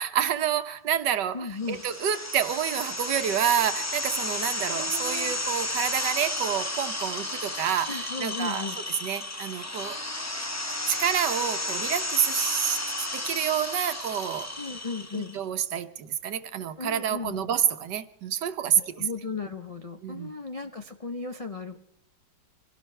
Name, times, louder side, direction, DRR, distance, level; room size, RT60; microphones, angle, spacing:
voice 1, 0.0-8.7 9.0-10.0 10.9-12.8 13.1-14.5 15.1-19.0 20.0-20.3, right 9 dB, 85° right, 1.6 m, -28 dB
voice 2, 1.3-1.8 4.7-5.3 7.9-8.8 14.6-15.4 16.8-17.6 18.8-21.8, left 4 dB, 55° left, 0.4 m, -36 dB
sound 1, 1.6-15.4, left 1 dB, 15° left, 0.6 m, -32 dB
25.0 x 17.0 x 3.3 m
omnidirectional pair, 1.8 m